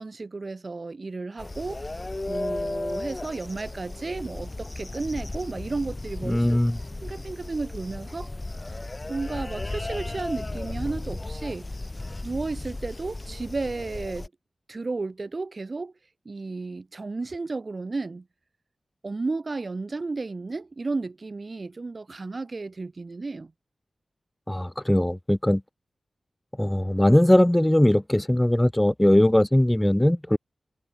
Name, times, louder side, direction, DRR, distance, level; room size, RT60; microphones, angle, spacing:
voice 1, 0.0-1.8 2.3-6.6 7.0-8.3 9.1-11.7 12.2-14.3 14.7-15.9 16.3-18.3 19.0-23.5, right 3 dB, 45° right, 3.9 m, -33 dB
sound 1, 1.4-14.3, left 2 dB, 30° left, 7.3 m, -35 dB
voice 2, 6.2-6.8 24.5-25.6 26.6-30.4, left 1 dB, 10° left, 1.6 m, -20 dB
wide cardioid pair, 75°, 0 cm